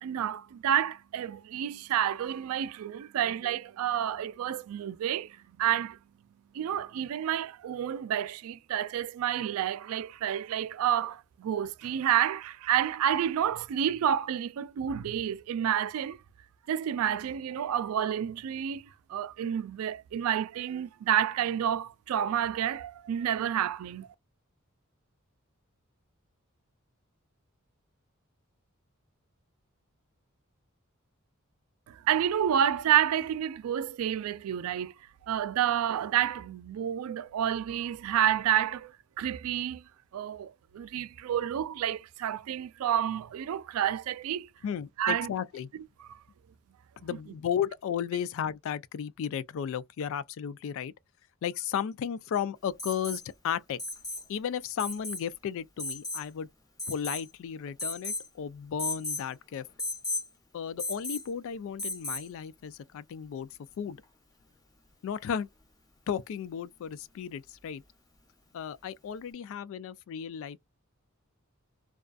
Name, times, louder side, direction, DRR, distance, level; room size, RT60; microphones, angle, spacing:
voice 1, 0.0-6.0 6.5-16.2 16.7-24.1 31.9-34.9 35.3-39.8 40.1-44.5 45.0-45.3 46.0-46.2, right 10 dB, 75° right, 0.3 m, -29 dB
voice 2, 44.6-45.7 47.0-50.9 51.4-53.8 54.3-56.5 56.9-59.7 60.5-63.5 63.8-64.0 65.0-65.5 66.1-67.8 68.5-70.6, left 8 dB, 65° left, 0.3 m, -34 dB
Alarm, 52.8-53.3 53.8-54.3 54.8-55.2 55.8-56.3 56.8-57.3 57.8-58.3 58.8-59.3 59.8-60.3 60.8-61.3 61.8-62.3 64.0-64.1, left 2 dB, 15° left, 0.7 m, -35 dB
2.4 x 2.3 x 2.2 m
head